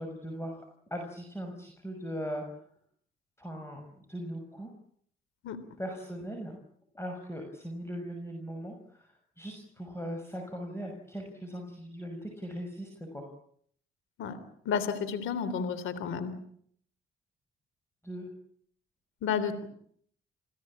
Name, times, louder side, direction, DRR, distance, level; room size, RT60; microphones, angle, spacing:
voice 1, 0.0-2.4 3.4-4.7 5.8-6.6 6.9-13.3 18.0-18.3, equal, 10° left, 3 dB, 6.1 m, -39 dB
voice 2, 14.6-16.3 19.2-19.7, left 6 dB, 85° left, 13 dB, 3.4 m, -31 dB
29.5 x 16.5 x 8.7 m, 0.64 s
cardioid pair, 85°, 20 cm